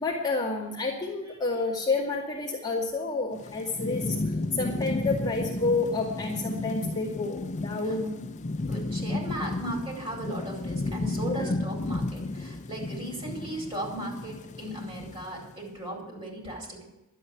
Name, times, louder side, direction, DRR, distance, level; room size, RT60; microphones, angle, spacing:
voice 1, 0.0-8.2 11.3-11.5, left 3 dB, 20° left, -5 dB, 2.1 m, -29 dB
Thunderstorm / Rain, 3.3-15.6, left 2 dB, 35° left, 0.5 m, -33 dB
voice 2, 8.7-16.8, right 1 dB, 25° right, -1 dB, 4.7 m, -37 dB
12.0 x 8.3 x 9.6 m, 0.97 s
head